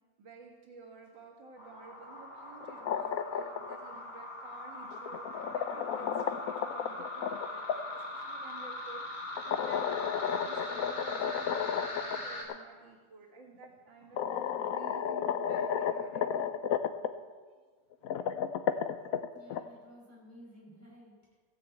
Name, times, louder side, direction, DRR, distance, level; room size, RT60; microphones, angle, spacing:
voice 1, 0.2-16.3 17.5-17.6 18.0-19.2, right 4 dB, 85° right, 0 dB, 2.5 m, -52 dB
sound 1, 1.6-12.4, left 2 dB, 25° left, 2.3 m, -41 dB
sound 2, 2.6-3.8 4.9-7.8 9.4-12.2 12.5-12.6 13.6-13.7 14.2-17.1 17.9-19.6, left 8 dB, 65° left, 0.9 m, -32 dB
voice 2, 19.3-21.4, equal, 10° left, -5 dB, 5.3 m, -54 dB
16.0 x 6.9 x 7.8 m, 1.5 s
omnidirectional pair, 2.0 m